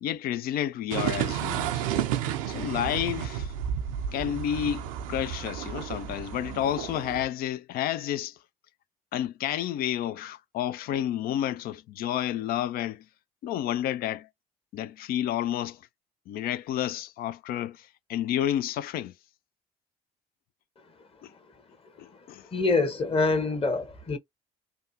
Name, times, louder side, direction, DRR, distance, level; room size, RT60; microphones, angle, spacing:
voice 1, 0.0-1.8 2.5-3.5 4.1-8.4 9.1-13.0 13.4-14.3 14.7-15.8 16.3-19.1 21.2-21.3 22.0-22.5, left 11 dB, 65° left, 0.4 m, -30 dB
sound 1, 0.9-7.3, right 10 dB, 85° right, 0.4 m, -32 dB
voice 2, 22.5-24.2, left 3 dB, 35° left, 1.2 m, -25 dB
3.4 x 2.2 x 2.7 m
hypercardioid pair, 50°, 17 cm